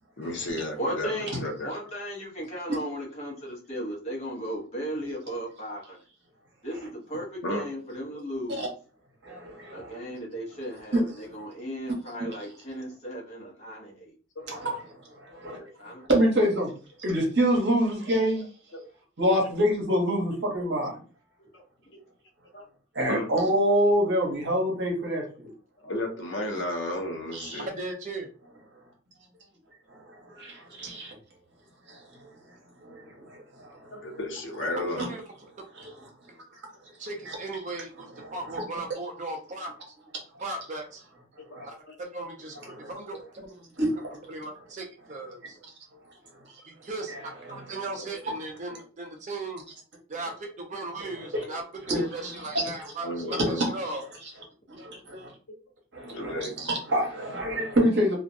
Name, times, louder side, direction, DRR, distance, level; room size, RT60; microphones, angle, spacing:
voice 1, 0.2-1.7 7.4-7.6 14.4-14.5 15.3-15.7 18.7-18.8 21.5-21.6 21.9-22.0 22.5-22.7 23.1-23.3 25.8-27.7 33.9-35.2 41.4-41.9 42.7-42.8 43.1-43.2 48.0-48.2 51.2-51.6 53.0-53.6 56.0-56.7, left 1 dB, 60° left, 2 dB, 0.6 m, -34 dB
voice 2, 0.8-6.0 6.6-8.6 9.7-14.1 15.8-16.3, equal, 35° left, -3 dB, 0.8 m, -36 dB
voice 3, 9.2-10.0 10.9-11.0 14.5-14.7 15.2-15.6 16.1-16.7 17.0-18.4 19.2-21.0 22.9-25.5 27.3-27.6 30.1-31.1 31.9-32.3 33.2-34.0 34.8-34.9 35.8-35.9 38.2-38.3 41.6-41.7 42.8-42.9 43.8-44.2 51.9-52.0 52.5-52.6 54.8-55.3 55.9-58.2, equal, 55° right, 0 dB, 0.9 m, -26 dB
voice 4, 27.7-28.3 35.0-35.2 37.0-39.7 40.4-41.0 41.6-42.6 42.9-43.6 44.3-45.6 46.7-49.6 50.1-54.0, right 2 dB, 35° right, 2 dB, 0.4 m, -37 dB
2.4 x 2.1 x 2.6 m, 0.37 s
head